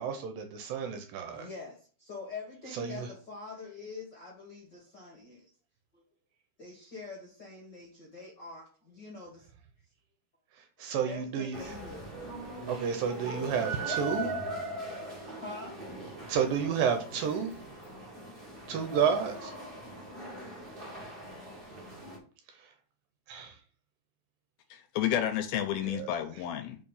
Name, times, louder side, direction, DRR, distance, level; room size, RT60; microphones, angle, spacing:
voice 1, 0.0-1.5 2.7-3.1 10.8-11.7 12.7-14.3 16.3-17.5 18.7-19.5 22.5-22.7 23.3-23.6 25.8-26.2, right 7 dB, 75° right, 6 dB, 2.3 m, -31 dB
voice 2, 1.3-5.5 5.9-6.0 6.6-9.5 10.8-12.1 15.0-15.8 18.1-18.8, left 3 dB, 50° left, -2 dB, 1.2 m, -45 dB
sound 1, 11.5-22.2, right 1 dB, 25° right, 1.1 m, -40 dB
voice 3, 24.7-26.8, left 10 dB, 80° left, 7 dB, 2.3 m, -31 dB
5.4 x 5.0 x 5.5 m, 0.40 s
omnidirectional pair, 4.7 m